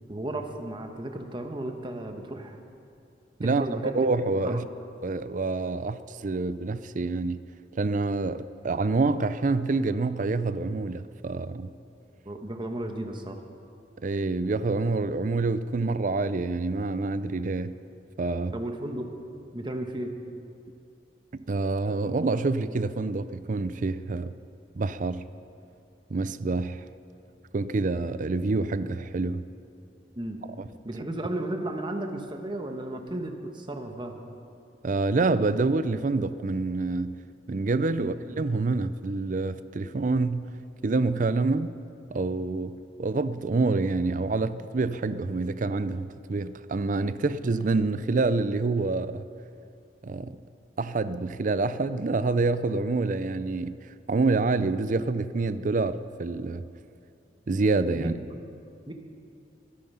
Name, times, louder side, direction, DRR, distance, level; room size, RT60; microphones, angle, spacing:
voice 1, 0.1-2.6 3.4-3.9 4.4-4.6 12.2-13.4 18.5-19.1 19.5-20.1 30.2-30.4 30.8-34.1 37.9-38.1 58.0-58.1 58.9-59.0, right 1 dB, 25° right, 1.2 m, -34 dB
voice 2, 3.4-4.7 5.0-7.4 7.8-11.7 14.0-17.8 18.2-18.6 21.5-24.3 24.8-25.3 26.1-26.8 27.5-29.5 34.8-37.2 37.5-40.5 40.8-41.8 42.1-49.2 50.0-50.4 50.8-53.8 54.1-56.6 57.5-58.1, right 3 dB, 45° right, 0.5 m, -27 dB
23.0 x 9.4 x 5.6 m
head